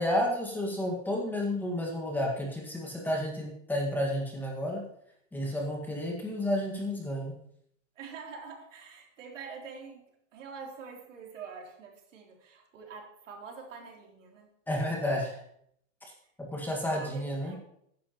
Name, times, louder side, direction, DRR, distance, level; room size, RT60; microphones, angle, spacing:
voice 1, 0.0-4.8 5.3-7.3 14.7-15.4 16.0-16.1 16.4-17.6, left 1 dB, 5° left, -1 dB, 1.7 m, -31 dB
voice 2, 8.0-10.0 10.3-14.5 16.6-17.6, right 5 dB, 85° right, 0 dB, 3.4 m, -45 dB
13.5 x 10.5 x 3.0 m, 0.71 s
supercardioid pair, 155°, 37 cm